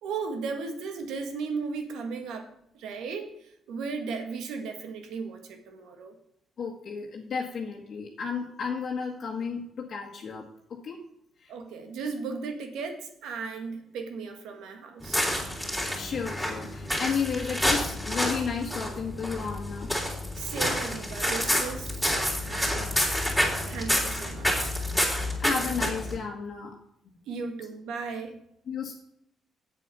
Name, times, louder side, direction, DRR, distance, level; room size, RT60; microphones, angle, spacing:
voice 1, 0.0-2.5 2.7-6.1 11.5-15.2 20.4-23.0 23.7-24.7 27.3-28.4, right 5 dB, 85° right, 6 dB, 1.7 m, -36 dB
voice 2, 6.6-10.4 10.8-11.0 11.4-11.5 15.9-19.9 25.4-26.7 28.7-28.9, left 6 dB, 55° left, -2 dB, 1.6 m, -32 dB
sound 1, 15.0-26.2, equal, 5° right, 3.5 m, -29 dB
8.3 x 7.8 x 5.5 m, 0.74 s
cardioid pair, 90°, 0 cm